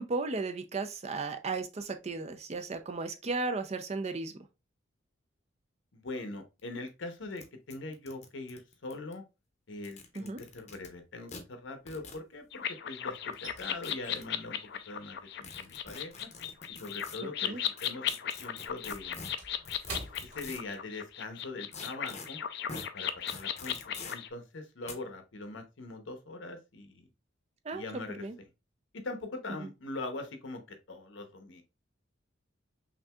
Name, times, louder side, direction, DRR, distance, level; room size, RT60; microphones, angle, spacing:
voice 1, 0.0-4.4 10.2-10.4 17.2-17.6 27.6-27.9 28.2-28.4 29.6-29.7, right 3 dB, 35° right, 0.4 m, -35 dB
voice 2, 5.9-9.2 9.7-16.3 16.7-18.1 18.4-19.2 20.2-22.4 22.9-27.1 27.7-28.2 28.9-31.6, left 2 dB, 75° left, 0.9 m, -42 dB
sound 1, 6.6-6.7 6.9-7.0 7.4-7.5 7.7-9.1 9.7-10.9 11.3-11.4 11.9-12.2 13.3-14.2 15.4-17.2 17.8-20.7 21.7-22.3 22.7-22.9 23.3-24.1 24.9-25.0, left 4 dB, 35° left, 0.7 m, -45 dB
sound 2, 11.0-12.7 12.9-17.6 17.9-21.2 21.5-21.7 22.2-22.5, right 2 dB, 85° right, 1.9 m, -50 dB
sound 3, 12.5-24.3, left 10 dB, 55° left, 0.4 m, -37 dB
5.8 x 2.7 x 2.3 m
head